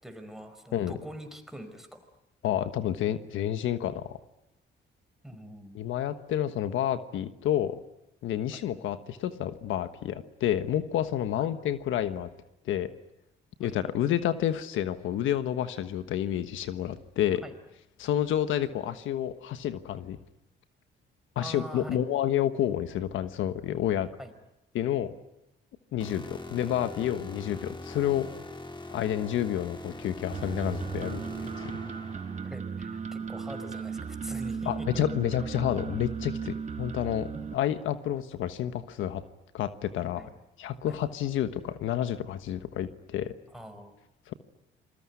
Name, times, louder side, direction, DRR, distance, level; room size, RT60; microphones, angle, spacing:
voice 1, 0.0-1.9 5.2-5.8 8.5-8.6 11.4-11.5 13.6-13.7 17.4-17.5 21.4-22.0 24.2-24.3 32.4-35.0 40.2-40.3 40.9-41.0 43.5-43.9, right 1 dB, ahead, 7 dB, 5.0 m, -43 dB
voice 2, 2.4-4.2 5.7-7.8 8.2-12.3 12.6-12.9 13.6-17.4 18.0-20.2 21.3-24.1 24.7-25.1 25.9-28.3 28.9-31.7 34.7-39.2 39.5-40.3 40.6-43.3 44.3-44.4, left 11 dB, 85° left, 11 dB, 1.3 m, -29 dB
sound 1, 26.0-32.5, left 2 dB, 25° left, 3.9 m, -42 dB
sound 2, 30.3-37.5, right 6 dB, 35° right, 1.8 m, -36 dB
27.5 x 21.5 x 9.7 m, 0.87 s
cardioid pair, 90°, 20 cm